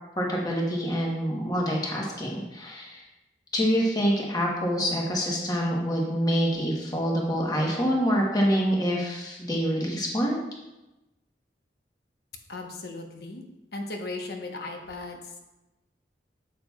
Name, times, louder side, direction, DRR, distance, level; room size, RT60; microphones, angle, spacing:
voice 1, 0.2-3.0 3.5-10.4, equal, 20° left, -2 dB, 1.1 m, -26 dB
voice 2, 12.5-13.4 13.7-15.4, left 2 dB, 60° left, 3 dB, 1.0 m, -37 dB
8.6 x 7.0 x 2.3 m, 0.99 s
head